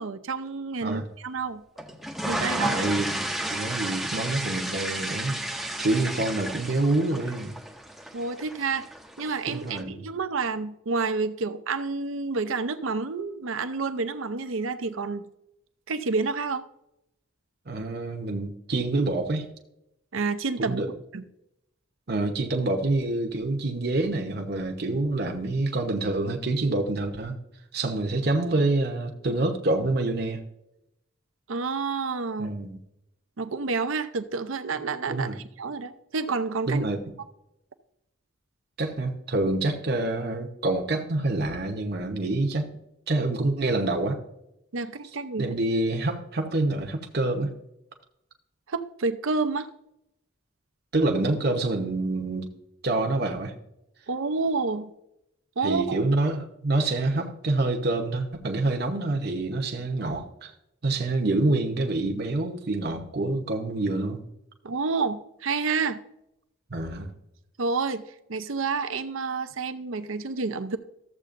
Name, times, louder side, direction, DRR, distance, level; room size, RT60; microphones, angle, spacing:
voice 1, 0.0-1.6 2.3-2.8 8.1-8.9 9.2-15.2 15.9-16.6 20.1-20.8 21.1-21.2 31.5-32.5 33.4-36.9 44.7-45.6 48.7-49.7 54.1-54.9 55.6-56.0 64.6-66.0 67.6-68.0 68.3-70.8, right 4 dB, 75° right, 10 dB, 0.6 m, -29 dB
sound 1, 1.8-9.8, right 1 dB, ahead, 0.6 m, -32 dB
voice 2, 2.6-5.4 5.8-7.5 9.5-10.1 17.7-19.5 20.6-20.9 22.1-27.4 27.7-30.4 32.4-32.8 35.1-35.4 36.7-37.0 38.8-42.7 43.1-44.2 45.4-47.5 50.9-52.5 52.8-53.5 55.6-60.5 60.8-64.2 66.7-67.1, right 2 dB, 50° right, 2 dB, 0.9 m, -27 dB
13.5 x 7.6 x 2.6 m, 0.84 s
head